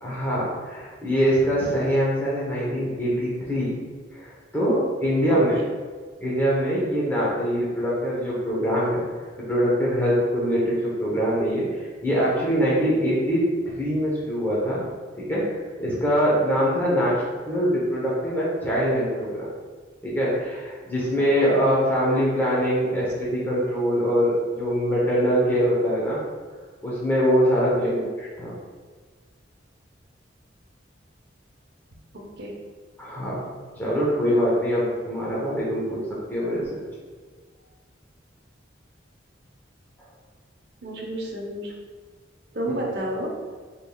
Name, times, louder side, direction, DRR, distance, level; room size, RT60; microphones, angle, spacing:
voice 1, 0.0-3.7 4.2-5.5 6.2-9.0 9.4-11.7 12.0-14.8 15.3-15.4 15.8-19.5 20.0-26.2 26.8-28.5 33.0-33.4 33.8-36.0 36.3-36.6, equal, 10° left, -7 dB, 0.8 m, -23 dB
voice 2, 32.1-32.5 40.8-41.7 42.5-43.3, right 1 dB, 60° right, -1 dB, 0.8 m, -30 dB
4.2 x 3.4 x 2.3 m, 1.5 s
head